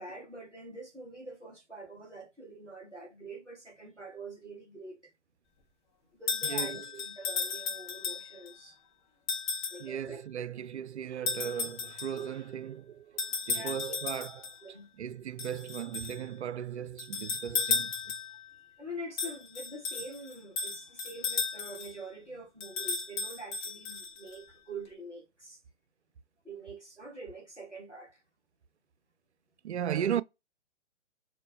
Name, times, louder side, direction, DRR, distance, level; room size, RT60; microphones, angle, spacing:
voice 1, 0.0-5.1 6.1-8.8 9.7-10.2 13.5-13.9 14.6-14.9 18.8-25.6 26.4-28.2, right 2 dB, ahead, 0.4 m, -45 dB
sound 1, 6.3-8.5 9.3-9.9 11.3-12.3 13.2-14.6 15.4-16.2 17.0-18.4 19.2-22.0 22.6-24.4, left 5 dB, 20° left, 0.7 m, -34 dB
voice 2, 6.4-6.8 9.8-13.2 13.5-14.4 15.0-17.9 29.6-30.2, right 9 dB, 65° right, 0.5 m, -36 dB
4.3 x 2.1 x 2.5 m
figure-of-eight pair, 130°, 37 cm